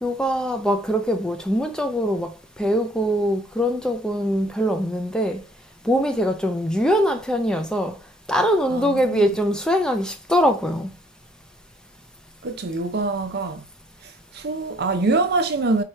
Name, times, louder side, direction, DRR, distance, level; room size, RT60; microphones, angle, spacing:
voice 1, 0.0-5.4 5.8-8.0 8.3-10.9, equal, 5° left, 0.4 m, -22 dB
voice 2, 8.7-9.4 12.4-13.6 14.3-15.8, right 3 dB, 50° right, 0.6 m, -24 dB
4.7 x 2.4 x 4.3 m
head